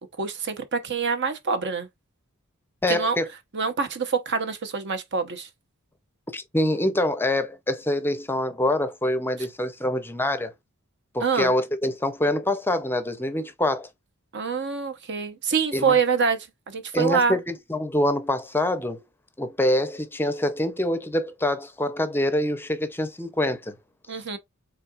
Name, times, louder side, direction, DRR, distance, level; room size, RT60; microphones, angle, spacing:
voice 1, 0.2-1.9 2.9-3.2 3.5-5.5 11.2-11.5 14.3-17.4 24.1-24.4, right 5 dB, 55° right, 0.9 m, -25 dB
voice 2, 2.8-3.3 6.3-10.5 11.1-13.9 15.7-15.9 16.9-19.0 19.4-23.8, left 1 dB, 10° left, 0.6 m, -25 dB
5.7 x 3.8 x 2.4 m
head